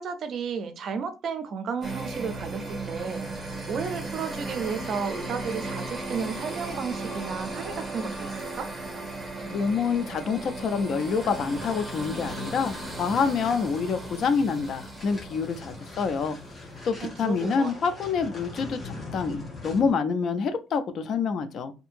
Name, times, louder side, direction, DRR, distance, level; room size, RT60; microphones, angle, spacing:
voice 1, 0.0-8.7 17.0-17.7, right 6 dB, 50° right, 0.5 m, -33 dB
sound 1, 1.8-16.6, right 2 dB, 5° right, 1.6 m, -36 dB
voice 2, 9.4-16.4 16.8-21.7, left 5 dB, 50° left, 0.4 m, -27 dB
sound 2, 11.0-20.0, left 2 dB, 25° left, 1.2 m, -42 dB
2.7 x 2.6 x 2.5 m
cardioid pair, 130°, 0 cm